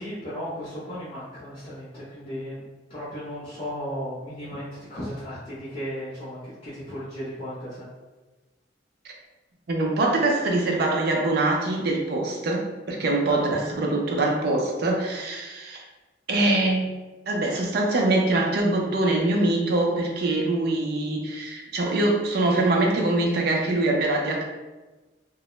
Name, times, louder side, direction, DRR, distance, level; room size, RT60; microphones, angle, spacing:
voice 1, 0.0-7.9 13.2-13.5, equal, 35° left, -11 dB, 0.6 m, -35 dB
voice 2, 9.7-15.8 16.3-17.0 17.3-24.4, right 2 dB, 60° right, 1 dB, 0.4 m, -23 dB
2.3 x 2.0 x 2.9 m, 1.2 s
head